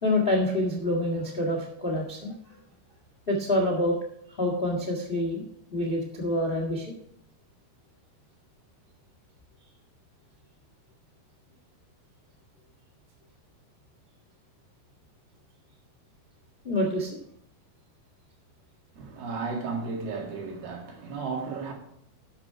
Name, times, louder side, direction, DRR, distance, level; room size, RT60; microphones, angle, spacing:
voice 1, 0.0-2.5 3.3-4.0 4.3-5.4 5.7-6.8 16.6-17.2, left 1 dB, 35° left, 0.9 m, -27 dB
voice 2, 18.9-21.7, right 4 dB, 70° right, 3.7 m, -34 dB
12.0 x 7.4 x 4.7 m
omnidirectional pair, 4.7 m